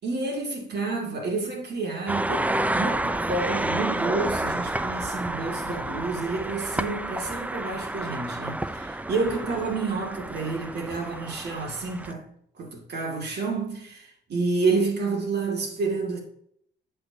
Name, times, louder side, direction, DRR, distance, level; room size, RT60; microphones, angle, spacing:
voice 1, 0.0-12.2 12.6-16.2, right 3 dB, 55° right, 2.5 m, -29 dB
sound 1, 2.1-12.1, right 1 dB, 5° right, 0.5 m, -30 dB
7.9 x 7.4 x 2.9 m
cardioid pair, 90°, 20 cm